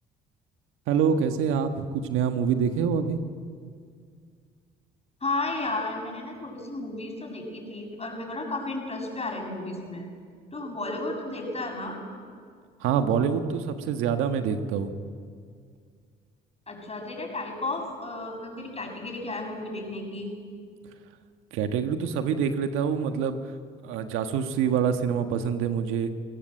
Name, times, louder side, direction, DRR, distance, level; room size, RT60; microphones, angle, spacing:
voice 1, 0.9-3.2 12.8-14.9 21.5-23.4 23.8-26.1, right 7 dB, 75° right, 8 dB, 1.4 m, -26 dB
voice 2, 5.2-10.1 10.5-12.0 16.7-20.3, left 2 dB, 30° left, 2 dB, 7.2 m, -33 dB
25.5 x 16.5 x 7.7 m, 2.1 s
hypercardioid pair, 60°, 21 cm